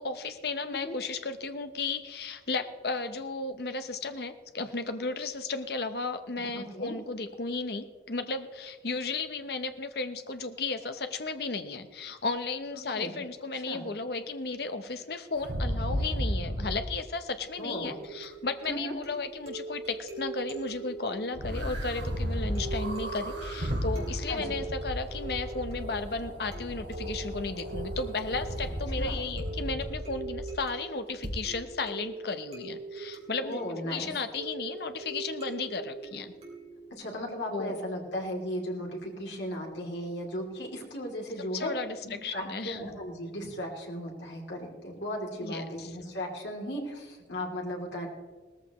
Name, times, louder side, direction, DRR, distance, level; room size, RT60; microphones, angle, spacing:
voice 1, 0.0-36.3 37.5-37.7 41.5-42.0 42.2-42.8 45.4-45.9, left 3 dB, 55° left, 8 dB, 0.8 m, -34 dB
voice 2, 6.4-6.9 12.9-13.1 13.5-13.8 17.6-18.0 18.7-18.9 24.3-24.6 29.0-29.2 33.4-34.2 36.9-41.7 42.0-48.1, equal, 75° left, 0 dB, 2.9 m, -36 dB
sound 1, 15.3-16.9 21.3-30.6 31.2-31.3, equal, 75° right, 2.2 m, -34 dB
sound 2, 17.7-36.9, right 3 dB, 35° right, 3.0 m, -42 dB
18.5 x 14.0 x 3.1 m, 1.4 s
head